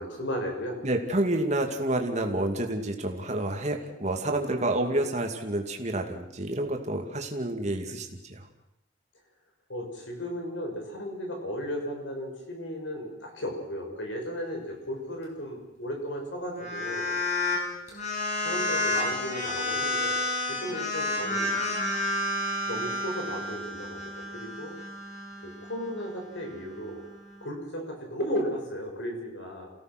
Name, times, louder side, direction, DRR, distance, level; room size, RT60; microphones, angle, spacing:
voice 1, 0.0-0.8 9.7-17.1 17.9-18.1 18.4-20.2 20.5-21.7 22.7-24.7 25.4-27.0 27.4-29.7, equal, 80° left, 2 dB, 6.3 m, -35 dB
voice 2, 0.8-8.5, right 1 dB, 40° right, 4 dB, 2.6 m, -29 dB
sound 1, 16.5-17.6 17.9-27.4, left 2 dB, 40° left, 6.9 m, -31 dB
28.5 x 17.0 x 6.2 m, 0.85 s
head